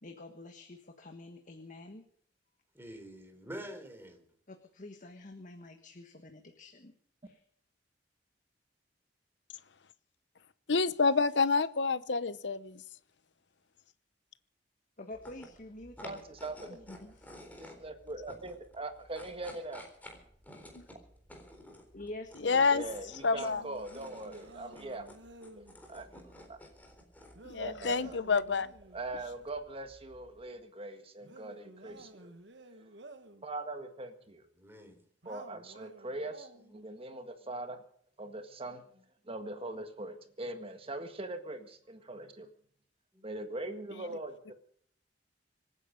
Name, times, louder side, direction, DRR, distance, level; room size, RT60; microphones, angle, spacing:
voice 1, 0.0-2.0 4.5-6.9 7.2-7.4 15.0-16.2 16.7-17.3 21.9-22.7, left 2 dB, 45° left, 1.5 m, -47 dB
voice 2, 2.7-4.3 34.6-35.0 36.6-36.9 38.8-39.0 43.1-43.6, equal, 15° right, 3.7 m, -48 dB
voice 3, 10.7-12.8 20.7-20.8 22.4-22.8 23.2-23.6 27.4-28.7, left 4 dB, 75° left, 0.9 m, -28 dB
sound 1, 15.1-30.5, left 1 dB, 10° left, 3.9 m, -54 dB
voice 4, 16.0-16.9 17.6-19.8 22.7-25.1 25.6-26.6 27.6-28.2 28.9-32.3 33.4-34.5 35.3-37.8 38.2-38.8 39.2-42.5 43.2-44.5, right 2 dB, 30° right, 1.8 m, -41 dB
sound 2, 23.4-25.7 27.3-29.0 31.2-33.5 35.2-36.8, right 2 dB, 70° right, 1.6 m, -52 dB
26.0 x 10.0 x 5.2 m
head